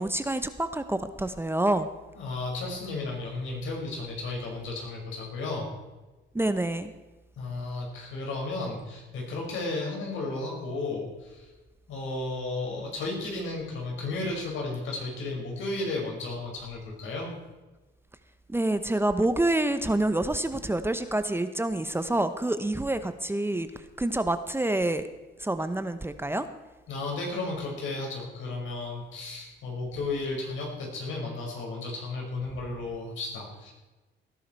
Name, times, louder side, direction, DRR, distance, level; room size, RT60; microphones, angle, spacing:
voice 1, 0.0-1.9 6.3-6.9 18.5-23.7 24.0-25.1 25.4-26.5, right 1 dB, 10° right, 10 dB, 0.8 m, -27 dB
voice 2, 2.2-5.7 7.4-11.5 11.9-17.3 26.9-33.7, left 2 dB, 75° left, -1 dB, 5.8 m, -34 dB
18.0 x 11.0 x 4.6 m, 1.2 s
cardioid pair, 90°, 20 cm